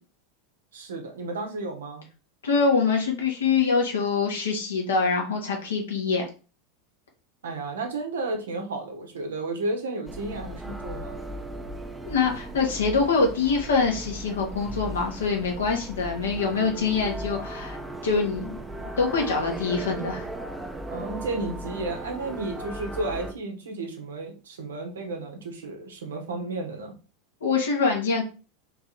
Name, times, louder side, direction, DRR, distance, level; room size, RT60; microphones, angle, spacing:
voice 1, 0.7-2.0 7.4-11.2 20.9-26.9, right 2 dB, 85° right, 3 dB, 1.2 m, -33 dB
voice 2, 2.4-6.2 12.0-17.8 18.0-20.3 27.4-28.2, left 4 dB, 90° left, 1 dB, 1.5 m, -24 dB
sound 1, 10.1-23.3, right 1 dB, 10° right, 0.8 m, -37 dB
3.8 x 3.1 x 4.0 m, 0.34 s
hypercardioid pair, 95°, 0 cm